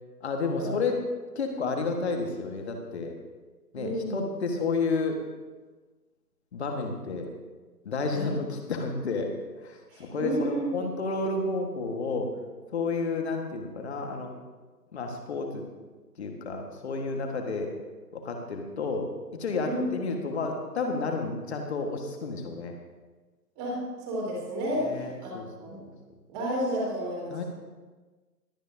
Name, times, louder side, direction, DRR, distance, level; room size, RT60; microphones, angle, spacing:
voice 1, 0.2-1.0 1.3-3.1 3.7-5.2 6.5-7.3 7.8-9.3 9.6-12.3 12.7-14.3 14.9-15.6 16.2-17.7 18.1-19.1 19.4-22.7 24.8-25.5 25.8-25.9 27.3-27.4, left 3 dB, 40° left, 3 dB, 1.6 m, -31 dB
voice 2, 3.7-4.3 8.1-8.3 9.9-10.9 19.6-19.8 23.6-25.8 26.3-27.5, equal, 20° right, -4 dB, 2.9 m, -32 dB
21.0 x 8.8 x 2.7 m, 1.3 s
figure-of-eight pair, 145°, 50 cm